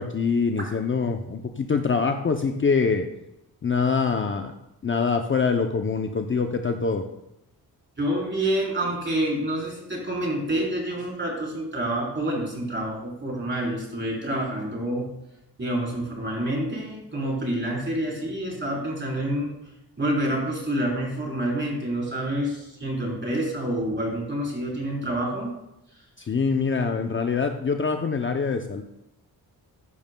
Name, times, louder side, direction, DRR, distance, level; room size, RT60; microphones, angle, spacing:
voice 1, 0.0-3.1 3.6-4.5 4.8-7.1 26.2-28.8, left 5 dB, 30° left, 5 dB, 0.6 m, -24 dB
voice 2, 8.0-15.1 15.6-19.5 20.0-25.6 25.9-26.0, right 1 dB, 30° right, -3 dB, 3.8 m, -28 dB
14.0 x 10.5 x 2.2 m, 0.86 s
wide cardioid pair, 140°, 39 cm